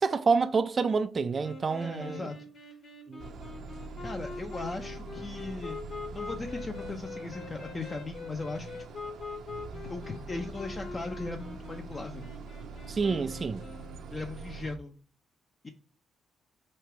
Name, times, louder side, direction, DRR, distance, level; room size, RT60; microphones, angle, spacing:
voice 1, 0.0-2.3 3.1-3.2 12.9-13.6, right 4 dB, 40° right, 0.3 m, -28 dB
sound 1, 1.4-14.0, left 4 dB, 55° left, 1.4 m, -43 dB
voice 2, 1.8-2.4 4.0-8.8 9.7-12.3 14.1-15.0 15.6-15.7, left 3 dB, 30° left, 0.5 m, -38 dB
sound 2, 3.2-14.8, right 4 dB, 70° right, 0.6 m, -44 dB
3.2 x 2.9 x 4.4 m
cardioid pair, 90°, 0 cm